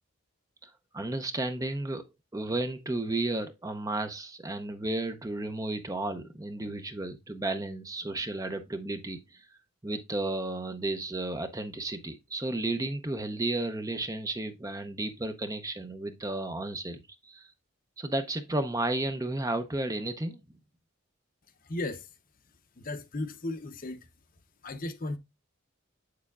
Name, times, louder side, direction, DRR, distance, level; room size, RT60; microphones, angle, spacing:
voice 1, 0.6-2.0 2.3-9.5 9.8-17.5 18.0-20.4, right 2 dB, 15° right, 0.6 m, -33 dB
voice 2, 21.6-22.1 22.8-24.1 24.6-25.2, left 2 dB, 40° left, 0.7 m, -35 dB
8.1 x 6.6 x 2.4 m
head